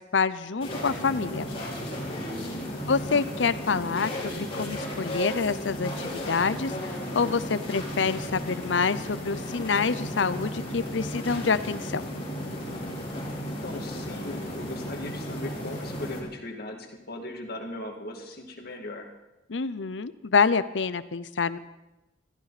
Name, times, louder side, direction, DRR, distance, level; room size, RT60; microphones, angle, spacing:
voice 1, 0.1-1.5 2.9-12.0 19.5-21.6, left 5 dB, 80° left, 15 dB, 0.7 m, -27 dB
sound 1, 0.6-16.2, equal, 30° left, 3.8 m, -34 dB
voice 2, 2.2-2.8 13.5-19.1, left 1 dB, 55° left, 2 dB, 2.3 m, -39 dB
22.0 x 14.5 x 4.2 m, 0.98 s
head